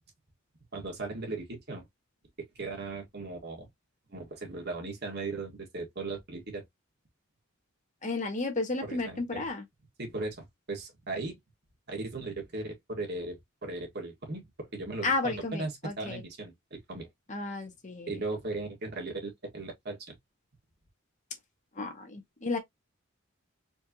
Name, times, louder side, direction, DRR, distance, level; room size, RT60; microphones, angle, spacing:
voice 1, 0.7-1.9 2.6-3.7 4.1-6.6 8.9-9.5 10.0-11.3 11.9-14.4 14.7-17.1 18.1-20.2, right 3 dB, 55° right, 1.9 m, -37 dB
voice 2, 8.0-9.6 15.0-16.2 17.3-18.2 21.8-22.6, left 3 dB, 35° left, 1.3 m, -33 dB
4.4 x 3.3 x 2.9 m
head